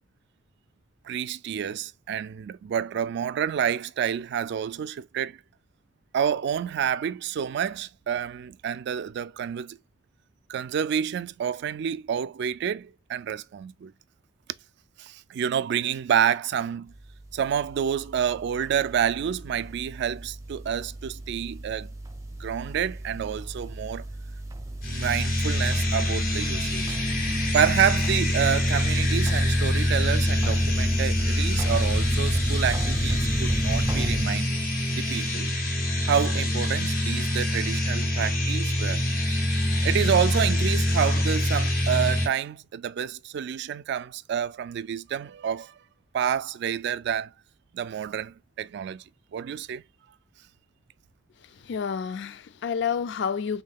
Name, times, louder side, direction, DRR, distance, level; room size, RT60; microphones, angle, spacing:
voice 1, 1.0-5.4 6.1-9.8 10.5-13.9 15.0-16.9 17.3-21.9 22.4-24.1 24.9-27.0 27.5-34.5 35.0-35.5 36.0-39.0 39.8-45.7 46.1-47.3 47.7-49.0 49.3-49.8, right 8 dB, 60° right, 0.3 m, -28 dB
sound 1, 16.9-34.3, right 1 dB, 15° right, 0.6 m, -35 dB
sound 2, 24.8-42.3, left 1 dB, 50° left, 1.5 m, -25 dB
voice 2, 51.4-53.6, left 6 dB, 65° left, 0.4 m, -30 dB
3.6 x 3.6 x 2.3 m
head